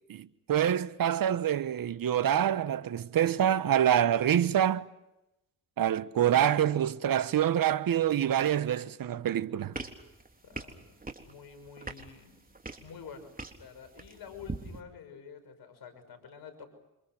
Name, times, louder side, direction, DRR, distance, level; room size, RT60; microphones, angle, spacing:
voice 1, 0.1-4.8 5.8-9.7, right 10 dB, 55° right, 1.2 m, -26 dB
voice 2, 6.4-6.9 10.4-12.5 12.8-16.7, left 6 dB, 65° left, 6.1 m, -48 dB
sound 1, 9.7-14.8, right 3 dB, 20° right, 3.7 m, -43 dB
29.0 x 26.0 x 6.2 m
hypercardioid pair, 45°, 40 cm